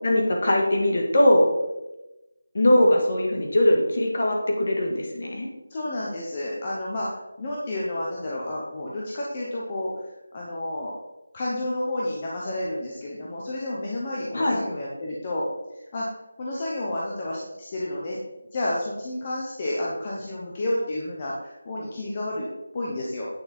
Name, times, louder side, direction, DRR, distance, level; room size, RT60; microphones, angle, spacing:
voice 1, 0.0-1.5 2.5-5.5 14.3-14.6, left 1 dB, 35° left, 0 dB, 1.8 m, -21 dB
voice 2, 5.7-9.9 10.3-10.9 11.3-15.4 15.8-16.0 16.4-18.2 18.5-22.5 22.7-23.3, left 1 dB, 15° left, -4 dB, 0.9 m, -30 dB
9.2 x 6.7 x 4.4 m, 0.99 s
figure-of-eight pair, 180°, 0 cm